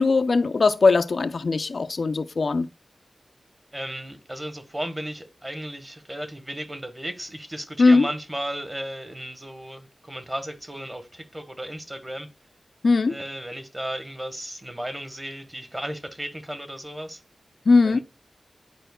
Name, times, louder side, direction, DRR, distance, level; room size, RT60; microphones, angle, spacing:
voice 1, 0.0-2.7 7.8-8.1 12.8-13.2 17.7-18.0, left 3 dB, 65° left, 0.4 m, -19 dB
voice 2, 3.7-12.3 13.1-17.2 17.8-18.0, right 1 dB, 20° right, 1.1 m, -35 dB
11.0 x 4.5 x 2.3 m
wide cardioid pair, 110°, 0 cm